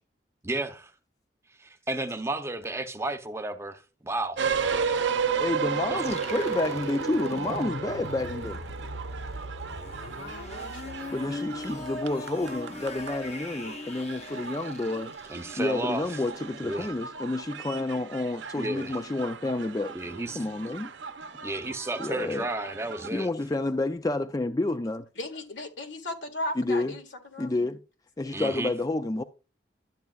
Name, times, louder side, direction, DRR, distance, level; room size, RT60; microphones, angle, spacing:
voice 1, 0.4-0.9 1.6-4.4 5.9-6.1 15.3-16.0 16.6-16.9 18.5-18.9 19.9-20.4 21.4-23.3 28.3-28.7, right 2 dB, 15° right, 0.7 m, -32 dB
sound 1, 4.4-23.1, right 6 dB, 80° right, 0.7 m, -34 dB
voice 2, 5.4-8.6 11.1-15.1 15.6-19.9 20.3-20.9 22.0-22.5 23.1-25.1 26.6-26.9 27.4-27.8 28.2-29.2, left 2 dB, 20° left, 0.4 m, -29 dB
sound 2, 6.0-15.8, left 2 dB, 35° left, 0.8 m, -40 dB
voice 3, 9.9-11.8 25.2-27.5, left 1 dB, 80° left, 1.9 m, -38 dB
12.0 x 8.3 x 2.4 m
head